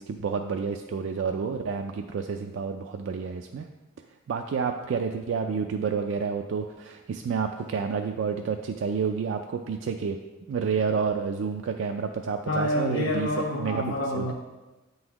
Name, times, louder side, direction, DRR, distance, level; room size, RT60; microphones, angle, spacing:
voice 1, 0.0-3.7 4.3-10.2 10.5-13.8 14.1-14.3, right 5 dB, 65° right, 4 dB, 0.3 m, -29 dB
voice 2, 12.5-14.3, left 1 dB, 85° left, -1 dB, 0.6 m, -28 dB
8.4 x 3.9 x 2.9 m, 1.1 s
head